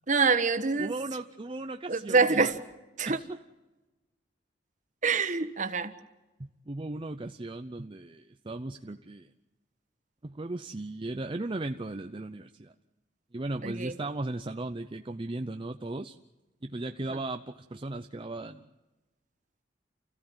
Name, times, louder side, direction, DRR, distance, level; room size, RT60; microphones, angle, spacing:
voice 1, 0.1-0.9 1.9-2.6 3.0-3.2 5.0-5.9 13.6-13.9, right 4 dB, 45° right, 10 dB, 1.4 m, -25 dB
voice 2, 0.8-2.5 3.0-3.4 6.4-9.3 10.2-12.7 13.3-16.2 16.6-18.6, right 2 dB, 30° right, 6 dB, 0.7 m, -37 dB
29.0 x 15.5 x 7.9 m, 1.1 s
head